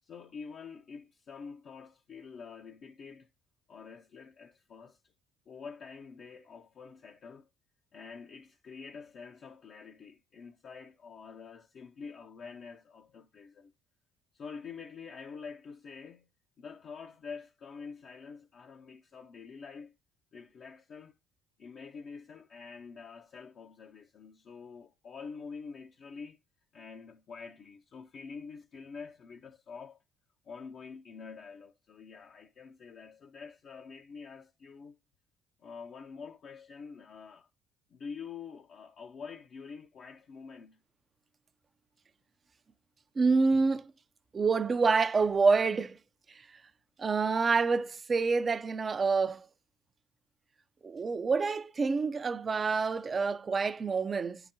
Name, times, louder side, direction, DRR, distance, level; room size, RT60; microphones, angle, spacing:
voice 1, 0.0-3.3 3.7-5.1 5.5-7.5 7.9-13.7 14.3-16.3 16.6-20.0 20.3-21.1 21.6-26.4 26.7-30.0 30.4-35.0 35.6-37.5 37.9-40.8, left 5 dB, 55° left, 0.5 m, -47 dB
voice 2, 43.2-43.9 44.3-46.0 47.0-49.5 50.8-54.4, right 4 dB, 35° right, 0.4 m, -27 dB
9.7 x 3.8 x 2.7 m
hypercardioid pair, 60°, 0 cm